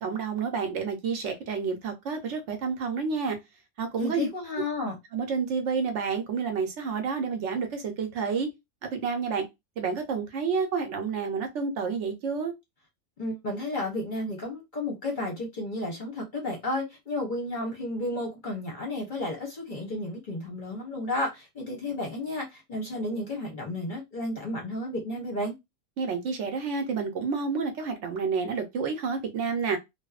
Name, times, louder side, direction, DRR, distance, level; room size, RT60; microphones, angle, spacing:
voice 1, 0.0-3.4 3.8-4.3 5.1-8.5 8.8-9.5 9.8-12.5 26.0-29.8, right 5 dB, 65° right, 0.8 m, -29 dB
voice 2, 4.0-5.0 13.2-25.5, left 1 dB, 45° left, 0.7 m, -32 dB
2.8 x 2.0 x 2.3 m
omnidirectional pair, 1.4 m